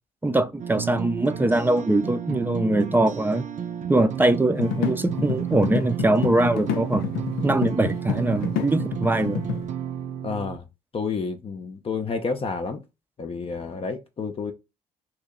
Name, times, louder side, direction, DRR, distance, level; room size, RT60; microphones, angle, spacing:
voice 1, 0.2-3.4 3.9-7.0 7.4-9.4, right 2 dB, 15° right, 0.5 m, -22 dB
sound 1, 0.6-10.6, right 9 dB, 55° right, 0.6 m, -32 dB
sound 2, 4.6-9.7, left 7 dB, 90° left, 0.6 m, -29 dB
voice 2, 10.2-10.6 10.9-12.8 13.2-14.5, left 4 dB, 40° left, 0.6 m, -30 dB
3.0 x 2.8 x 3.7 m
supercardioid pair, 70°, 15 cm